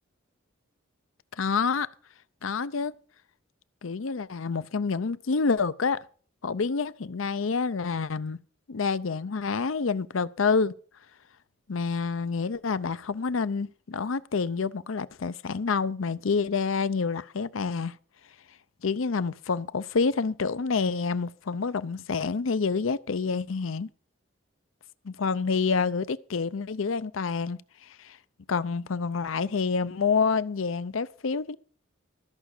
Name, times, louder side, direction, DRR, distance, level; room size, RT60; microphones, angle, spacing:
voice 1, 1.4-1.9 2.4-2.9 3.8-6.0 6.4-8.4 8.7-10.7 11.7-17.9 18.8-23.9 25.0-27.6 28.0-28.2 28.5-31.6, left 5 dB, 80° left, 0.6 m, -28 dB
13.5 x 6.0 x 8.2 m
head